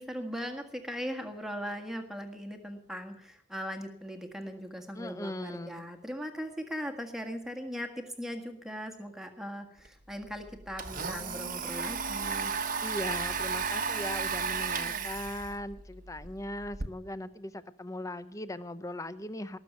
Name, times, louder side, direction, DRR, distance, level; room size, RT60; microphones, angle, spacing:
voice 1, 0.0-12.5, equal, ahead, 4 dB, 1.7 m, -39 dB
voice 2, 4.9-5.8 12.8-19.6, left 1 dB, 15° left, 14 dB, 0.6 m, -39 dB
Domestic sounds home sounds, 9.8-9.9 10.2-16.9, right 5 dB, 40° right, 1.2 m, -34 dB
18.5 x 7.1 x 9.2 m, 0.73 s
head